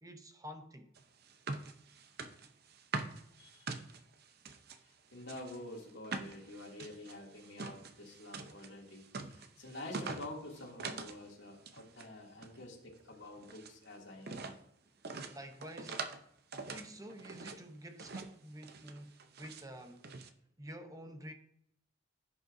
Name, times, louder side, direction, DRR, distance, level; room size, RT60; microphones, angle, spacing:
voice 1, 0.0-0.9 15.0-16.1 16.7-20.1 20.6-21.3, equal, 20° right, 0.8 m, -49 dB
sound 1, 1.0-4.8 5.2-11.2 11.5-12.1 12.4-13.8 14.2-14.6 15.0-16.2 16.5-17.6 18.0-18.4 18.6-19.6 20.0-20.3, right 4 dB, 55° right, 0.7 m, -44 dB
voice 2, 3.4-3.8 4.8-14.5, left 1 dB, 65° left, 2.6 m, -48 dB
15.5 x 6.7 x 2.7 m
head